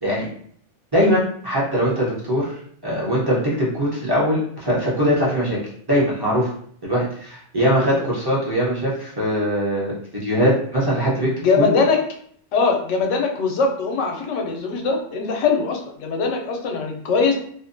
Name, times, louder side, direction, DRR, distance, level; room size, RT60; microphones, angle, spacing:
voice 1, 0.9-2.5 2.8-5.6 5.9-6.5 6.8-11.3 11.6-11.7, equal, 30° right, -7 dB, 0.5 m, -21 dB
voice 2, 11.4-12.0 12.5-17.3, left 4 dB, 85° left, 2 dB, 0.9 m, -21 dB
2.6 x 2.1 x 2.5 m, 0.62 s
omnidirectional pair, 1.2 m